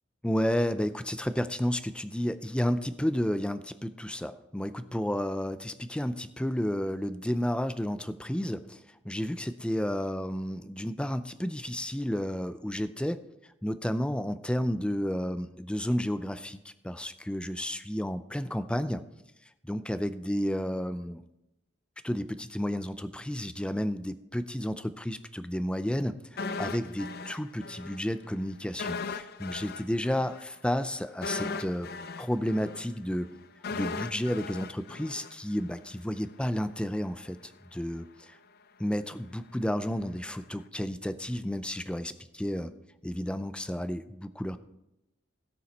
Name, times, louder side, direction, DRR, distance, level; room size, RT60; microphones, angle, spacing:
voice 1, 0.2-13.2 13.6-19.0 19.6-21.2 22.0-31.9 32.2-33.3 33.7-38.4 38.8-42.7 43.0-44.6, equal, 5° left, 12 dB, 0.4 m, -32 dB
sound 1, 26.4-28.0 28.3-28.4 28.8-35.9 36.2-36.3, left 4 dB, 55° left, 0.6 m, -38 dB
17.0 x 6.8 x 4.3 m, 0.89 s
head